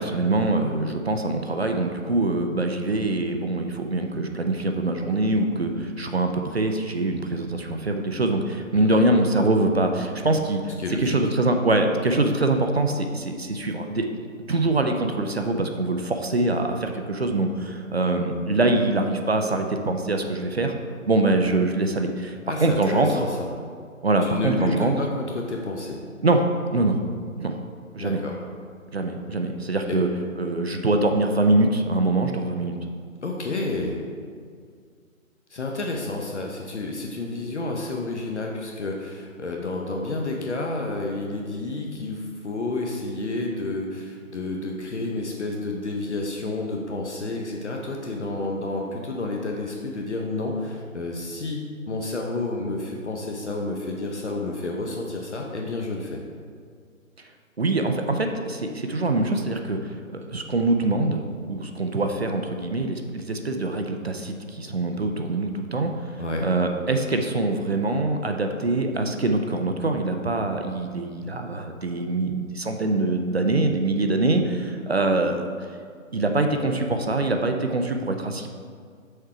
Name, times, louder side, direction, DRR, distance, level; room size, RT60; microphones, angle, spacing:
voice 1, 0.0-10.7 11.0-14.1 14.5-20.7 21.1-23.2 24.0-25.0 26.2-26.4 26.7-27.0 27.4-27.6 27.9-28.2 28.9-30.1 30.4-32.8 57.6-59.8 60.1-65.9 66.4-75.4 76.1-78.5, right 2 dB, 50° right, 5 dB, 0.5 m, -24 dB
voice 2, 10.8-11.2 22.5-23.5 24.2-26.0 28.0-28.4 29.9-30.0 33.2-34.0 35.5-56.2 66.2-66.5, left 2 dB, 55° left, 0 dB, 0.8 m, -30 dB
6.5 x 4.4 x 4.8 m, 2.1 s
hypercardioid pair, 175°, 41 cm